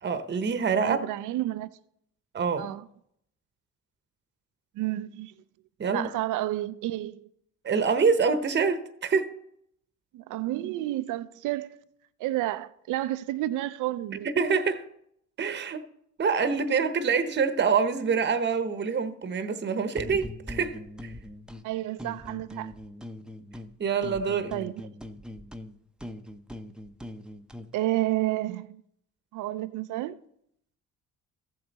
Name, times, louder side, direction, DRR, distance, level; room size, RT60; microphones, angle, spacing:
voice 1, 0.0-1.0 2.3-2.7 5.8-6.1 7.6-9.4 14.2-14.8 15.4-15.8 16.2-21.1 23.8-24.5, right 5 dB, 35° right, 0.9 m, -26 dB
voice 2, 0.8-1.7 2.6-2.8 4.8-5.3 5.9-7.2 10.1-11.7 12.2-14.3 21.6-22.7 24.5-24.8 27.7-28.8 29.3-30.2, right 15 dB, 85° right, 0.5 m, -30 dB
sound 1, 19.9-21.6 22.0-23.7 24.0-27.7, left 1 dB, 5° right, 0.6 m, -41 dB
14.0 x 7.6 x 4.0 m
cardioid pair, 90°, 30 cm